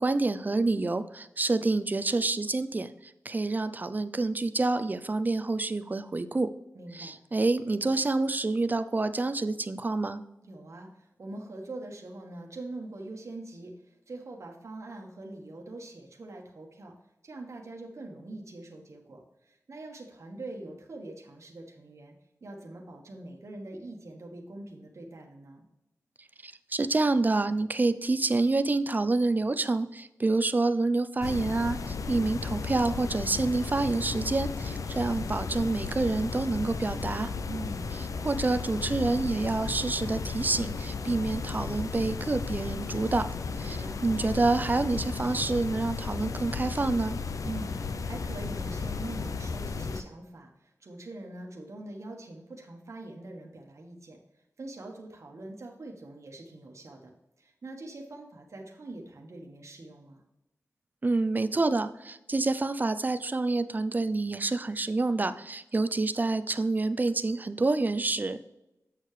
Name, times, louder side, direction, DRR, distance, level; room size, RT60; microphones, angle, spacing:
voice 1, 0.0-6.5 6.9-10.2 26.4-37.3 38.2-43.3 43.6-47.2 61.0-68.4, right 3 dB, 30° right, 11 dB, 0.4 m, -28 dB
voice 2, 6.7-7.2 10.4-16.9 17.2-22.1 22.4-25.7 37.5-37.9 43.6-44.0 47.4-54.2 54.6-57.1 57.4-60.2, right 2 dB, 60° right, 0 dB, 1.2 m, -43 dB
sound 1, 31.2-50.0, left 4 dB, 70° left, 0.5 m, -34 dB
8.1 x 6.6 x 3.2 m, 0.94 s
wide cardioid pair, 115°, 6 cm